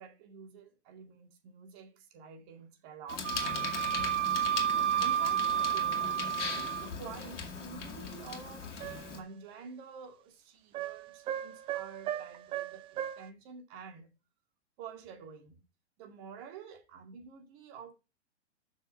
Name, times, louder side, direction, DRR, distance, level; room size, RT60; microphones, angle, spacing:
voice 1, 0.0-4.1 4.7-8.7 9.1-14.1 14.8-15.6 16.0-17.9, right 6 dB, 40° right, 2.3 m, -49 dB
Bicycle, 3.1-9.2, left 5 dB, 75° left, 2.2 m, -39 dB
Wind instrument woodwind instrument, 3.2-6.9, right 10 dB, 75° right, 0.9 m, -30 dB
sound 1, 8.8-9.2 10.7-13.3, right 11 dB, 15° right, 0.4 m, -38 dB
6.8 x 6.3 x 5.7 m
hypercardioid pair, 120°, 36 cm